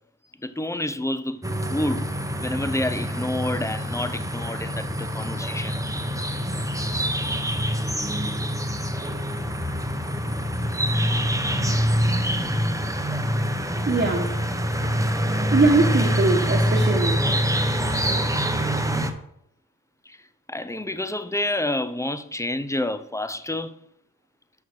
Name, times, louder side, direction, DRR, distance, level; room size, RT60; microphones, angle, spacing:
voice 1, 0.4-1.4 1.7-2.1 2.4-5.8 20.1-20.2 20.5-23.7, left 1 dB, 10° left, 0.7 m, -28 dB
sound 1, 1.4-19.1, equal, 10° right, 1.0 m, -25 dB
voice 2, 13.9-14.4 15.5-17.2, right 3 dB, 30° right, 1.4 m, -21 dB
6.3 x 5.8 x 6.3 m
cardioid pair, 50°, 35 cm